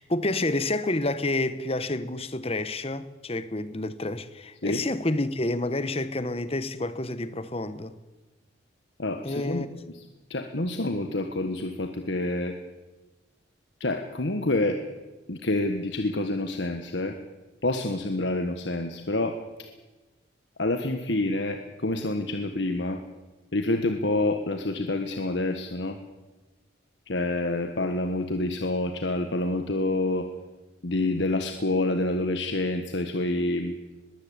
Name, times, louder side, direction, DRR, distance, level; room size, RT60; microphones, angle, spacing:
voice 1, 0.0-7.9 9.2-9.7, left 2 dB, 30° left, 1.0 m, -29 dB
voice 2, 9.0-9.7 9.9-10.0 10.3-12.5 13.8-14.8 15.3-17.1 17.6-19.4 20.6-23.0 23.5-26.0 27.1-30.3 30.8-33.8, left 2 dB, 65° left, 1.5 m, -27 dB
21.5 x 15.0 x 8.9 m
head